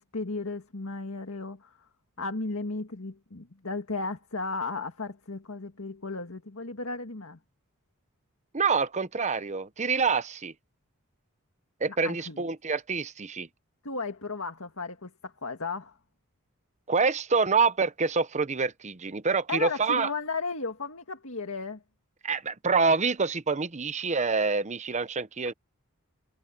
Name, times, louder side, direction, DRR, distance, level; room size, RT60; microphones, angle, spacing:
voice 1, 0.0-1.9 2.2-7.4 11.9-12.5 13.8-16.0 19.5-21.8, left 3 dB, 65° left, 2.0 m, -35 dB
voice 2, 8.5-10.5 11.8-13.5 16.9-20.1 22.2-25.5, right 4 dB, 30° right, 0.8 m, -26 dB
head